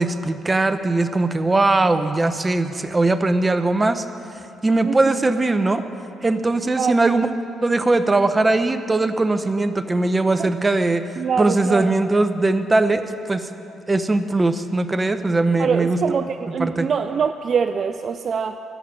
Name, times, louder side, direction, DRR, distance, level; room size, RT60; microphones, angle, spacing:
voice 1, 0.0-4.0 4.6-5.8 6.2-7.3 7.6-11.0 11.4-13.5 13.9-16.0 16.6-16.9, right 2 dB, 25° right, 10 dB, 0.8 m, -20 dB
voice 2, 4.8-5.2 6.6-7.1 10.4-10.5 11.2-11.9 15.6-18.6, right 6 dB, 55° right, 9 dB, 0.4 m, -24 dB
14.0 x 5.9 x 9.8 m, 2.6 s
supercardioid pair, 60°, 0 cm